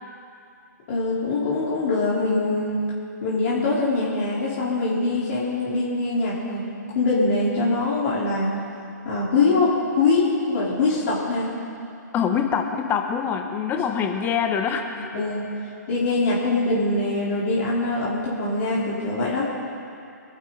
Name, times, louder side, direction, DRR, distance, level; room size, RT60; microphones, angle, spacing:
voice 1, 0.9-2.8 3.2-8.6 9.0-11.5 13.7-13.8 15.0-15.5 15.9-19.4, left 3 dB, 50° left, -7 dB, 3.7 m, -23 dB
voice 2, 12.1-15.1, left 7 dB, 20° left, 5 dB, 1.1 m, -24 dB
24.5 x 11.5 x 3.9 m, 2.6 s
hypercardioid pair, 135°, 10 cm